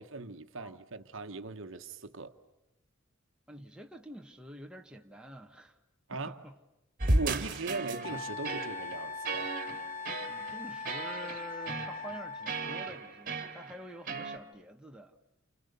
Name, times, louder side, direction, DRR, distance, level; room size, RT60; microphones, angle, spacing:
voice 1, 0.0-2.3 6.1-6.4 7.1-9.5, right 3 dB, 70° right, 1.2 m, -39 dB
voice 2, 3.5-5.8 6.1-6.6 10.3-15.2, equal, 5° right, 1.3 m, -47 dB
sound 1, 7.0-14.4, right 2 dB, 45° right, 2.2 m, -35 dB
Wind instrument woodwind instrument, 8.0-12.9, left 4 dB, 40° left, 1.0 m, -41 dB
30.0 x 29.5 x 6.8 m
head